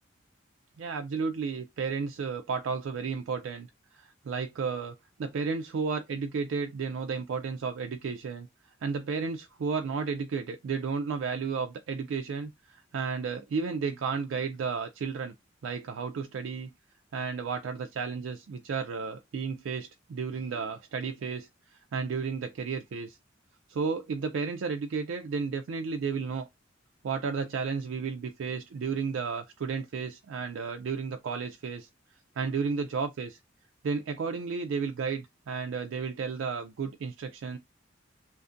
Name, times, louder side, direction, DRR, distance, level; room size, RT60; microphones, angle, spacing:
voice 1, 0.8-3.7 3.9-8.5 8.8-15.3 15.6-16.7 17.1-21.5 21.9-23.2 23.7-26.5 27.0-31.9 32.4-33.4 33.8-37.6, right 5 dB, 75° right, 0.3 m, -33 dB
2.5 x 2.5 x 2.5 m
head